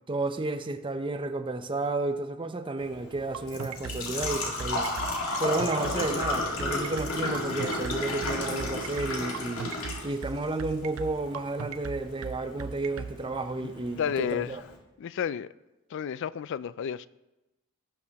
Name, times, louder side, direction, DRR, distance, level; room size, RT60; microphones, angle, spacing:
voice 1, 0.1-4.9 5.4-9.8 10.0-14.6, right 2 dB, 25° right, 0.6 m, -32 dB
Engine / Trickle dribble / Fill (with liquid), 2.8-14.8, left 2 dB, 75° left, 2.0 m, -34 dB
sound 1, 3.3-13.1, right 5 dB, 80° right, 0.5 m, -37 dB
voice 2, 13.6-14.6 15.0-15.5 15.9-17.1, left 8 dB, 60° left, 0.3 m, -32 dB
17.5 x 6.3 x 2.9 m
head